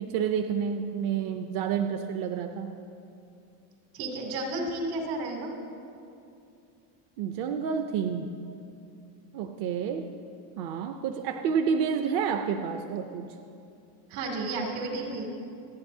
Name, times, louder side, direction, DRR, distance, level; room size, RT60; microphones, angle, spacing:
voice 1, 0.0-2.7 7.2-8.3 9.3-10.1 10.6-13.3, right 7 dB, 50° right, 6 dB, 0.6 m, -29 dB
voice 2, 3.9-5.5 14.1-15.3, right 2 dB, 80° right, 0 dB, 2.8 m, -32 dB
26.5 x 9.3 x 2.7 m, 2.6 s
cardioid pair, 170°, 45 cm